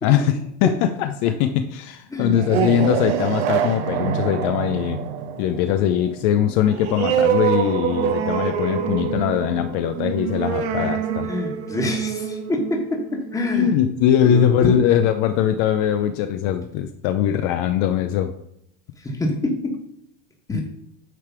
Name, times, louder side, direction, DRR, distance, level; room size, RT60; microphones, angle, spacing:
voice 1, 0.0-5.0 5.4-11.3 13.5-18.3 20.5-20.6, left 10 dB, 60° left, 8 dB, 0.6 m, -21 dB
sound 1, 2.2-13.4, right 8 dB, 90° right, 1.1 m, -25 dB
voice 2, 11.3-13.7 14.2-14.8 19.0-19.7 20.5-20.6, left 1 dB, 10° left, 1 dB, 1.4 m, -26 dB
9.2 x 3.3 x 6.0 m, 0.76 s
supercardioid pair, 135°, 32 cm